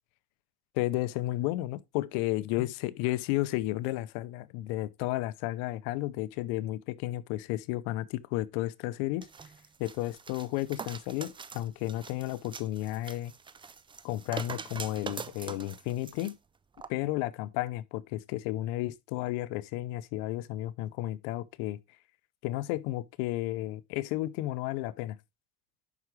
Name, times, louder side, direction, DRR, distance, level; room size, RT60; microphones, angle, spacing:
voice 1, 0.7-9.3 9.8-13.3 14.0-16.3 16.9-21.8 22.4-25.2, left 16 dB, 90° left, 0.7 m, -32 dB
sound 1, 9.2-16.3 16.8-16.9, right 5 dB, 15° right, 0.4 m, -43 dB
11.0 x 4.8 x 3.1 m
cardioid pair, 120°, 37 cm